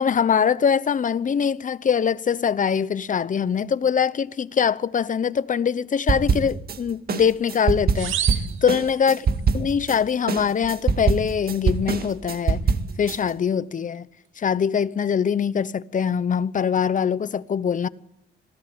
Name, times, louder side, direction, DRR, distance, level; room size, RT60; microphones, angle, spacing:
voice 1, 0.0-8.1 8.6-9.3 9.5-12.6 13.0-14.1 14.4-17.9, left 7 dB, 40° left, 1.0 m, -23 dB
sound 1, 6.1-6.8 7.1-10.0 10.3-13.2, right 5 dB, 50° right, 2.0 m, -23 dB
sound 2, 7.9-9.5, right 10 dB, 80° right, 2.6 m, -31 dB
26.5 x 17.5 x 8.8 m
cardioid pair, 90°, 20 cm